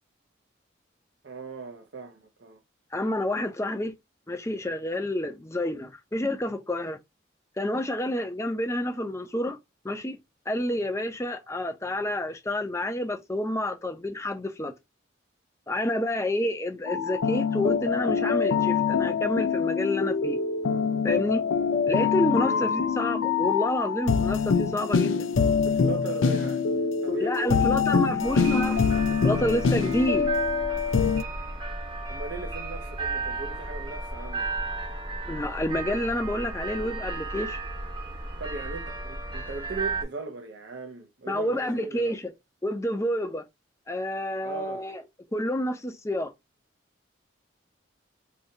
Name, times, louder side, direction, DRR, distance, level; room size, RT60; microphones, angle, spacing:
voice 1, 1.2-2.6 6.5-6.6 22.4-22.7 25.6-26.6 27.0-28.1 32.1-34.5 38.4-42.1 44.4-44.9, right 3 dB, 55° right, 0.5 m, -38 dB
voice 2, 2.9-3.9 4.3-7.0 7.6-9.6 9.8-10.2 10.5-14.7 15.7-20.4 21.0-21.4 21.9-25.2 27.2-28.8 29.2-30.3 35.3-37.6 41.3-42.3 42.6-43.5 43.9-45.0 45.3-46.3, left 1 dB, 15° left, 0.5 m, -29 dB
sound 1, 16.9-31.2, left 6 dB, 85° left, 0.4 m, -25 dB
sound 2, 28.2-40.0, right 3 dB, 25° right, 0.9 m, -34 dB
4.8 x 2.7 x 2.7 m
head